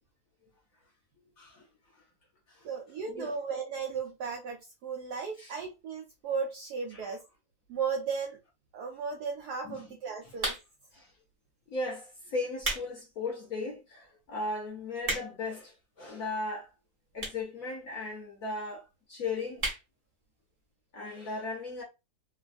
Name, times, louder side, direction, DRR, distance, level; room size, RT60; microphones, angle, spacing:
voice 1, 2.6-7.2 7.7-8.4 8.7-10.6, right 5 dB, 75° right, 0.9 m, -35 dB
sound 1, 10.4-10.9 11.6-11.8 12.4-12.9 13.3-13.4 14.0-14.1 14.3-14.4 14.7-15.5 16.3-16.4 17.2-17.5 17.8-17.9 18.1-18.2 18.4-18.5 18.8-19.1 19.5-19.8 20.2-20.3 20.5-20.6, right 2 dB, 40° right, 0.8 m, -33 dB
voice 2, 11.7-16.7 17.1-19.6 20.9-21.8, left 3 dB, 60° left, 0.9 m, -37 dB
3.2 x 2.2 x 2.4 m
omnidirectional pair, 2.2 m